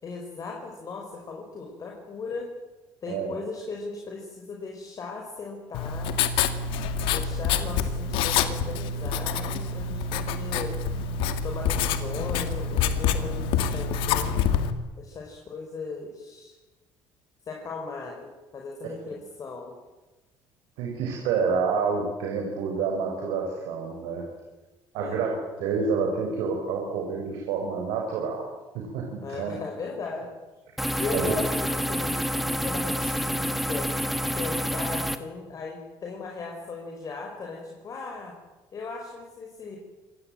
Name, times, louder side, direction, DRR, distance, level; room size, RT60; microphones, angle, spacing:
voice 1, 0.0-2.5 3.0-6.2 7.1-10.8 11.4-14.3 15.0-16.6 17.5-19.7 25.0-25.2 29.2-30.3 31.0-33.9 34.4-38.3 38.7-39.8, left 4 dB, 40° left, 1 dB, 5.2 m, -37 dB
Writing, 5.7-14.7, left 6 dB, 80° left, 2.2 m, -27 dB
voice 2, 20.8-24.3 24.9-25.3 25.6-28.5 28.9-29.6 31.1-31.3, right 5 dB, 85° right, 0 dB, 5.5 m, -28 dB
sound 1, 30.8-35.2, equal, ahead, 1.8 m, -28 dB
26.5 x 19.0 x 8.9 m, 1.1 s
cardioid pair, 105°, 9 cm